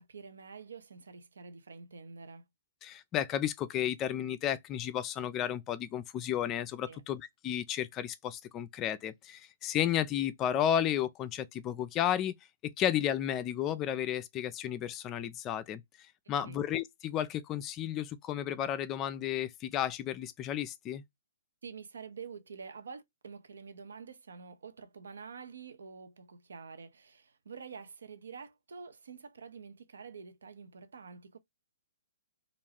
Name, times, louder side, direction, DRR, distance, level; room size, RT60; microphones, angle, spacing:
voice 1, 0.0-2.5 6.9-7.0 16.3-16.6 21.6-31.4, right 5 dB, 75° right, 0.6 m, -48 dB
voice 2, 2.8-12.3 12.6-15.8 16.3-21.0, left 10 dB, 25° left, 0.3 m, -33 dB
2.4 x 2.2 x 3.3 m
hypercardioid pair, 130°, 0 cm